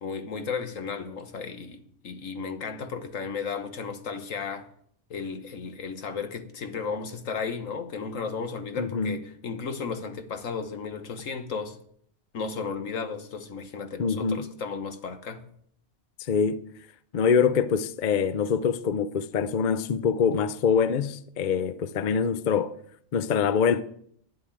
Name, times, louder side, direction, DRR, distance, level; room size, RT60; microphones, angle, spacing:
voice 1, 0.0-4.7 5.1-11.8 12.3-15.4, left 5 dB, 75° left, 1.7 m, -34 dB
voice 2, 8.8-9.2 14.0-14.4 16.2-16.6 17.1-22.7 23.1-23.8, left 6 dB, 45° left, 0.6 m, -24 dB
10.5 x 8.0 x 9.1 m
omnidirectional pair, 1.4 m